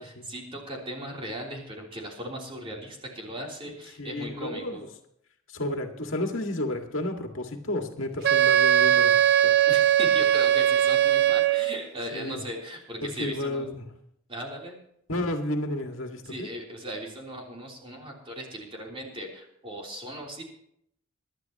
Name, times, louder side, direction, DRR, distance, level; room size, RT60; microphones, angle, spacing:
voice 1, 0.0-4.8 9.7-13.7 14.3-14.8 16.2-20.4, right 1 dB, 25° right, -2 dB, 3.4 m, -38 dB
voice 2, 4.0-4.9 5.5-9.5 12.1-12.4 13.0-13.8 15.1-16.5, left 1 dB, 65° left, 3 dB, 2.0 m, -32 dB
Wind instrument woodwind instrument, 8.2-11.8, right 10 dB, 50° right, 0.4 m, -20 dB
24.0 x 11.5 x 3.0 m, 0.71 s
head